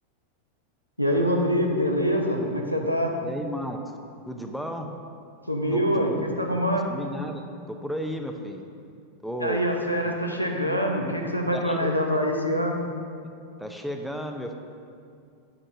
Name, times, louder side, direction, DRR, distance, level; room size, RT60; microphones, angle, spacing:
voice 1, 1.0-3.1 5.5-6.9 9.4-12.8, equal, 90° right, 1 dB, 0.9 m, -25 dB
voice 2, 3.2-4.0 4.3-4.9 5.7-6.1 6.9-7.4 7.7-8.6 9.2-9.7 10.0-10.2 11.5-12.0 13.6-14.5, equal, ahead, 4 dB, 0.6 m, -33 dB
9.7 x 8.6 x 2.7 m, 2.4 s
figure-of-eight pair, 90°, 0 cm